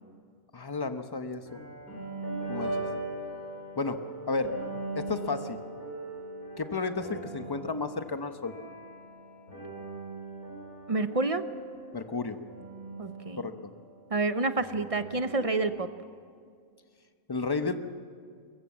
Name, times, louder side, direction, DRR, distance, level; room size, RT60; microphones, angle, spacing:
voice 1, 0.5-1.6 2.5-2.7 3.8-4.0 4.3-4.5 4.9-5.6 6.6-8.5 11.9-12.4 13.4-13.5 17.3-17.7, left 4 dB, 20° left, 8 dB, 0.8 m, -32 dB
sound 1, 1.5-14.1 14.6-15.6, right 2 dB, 75° left, 7.3 m, -40 dB
voice 2, 10.9-11.4 13.0-13.5 14.1-15.9, right 3 dB, 35° right, 10 dB, 0.6 m, -28 dB
22.0 x 21.5 x 7.4 m, 2.2 s
omnidirectional pair, 1.5 m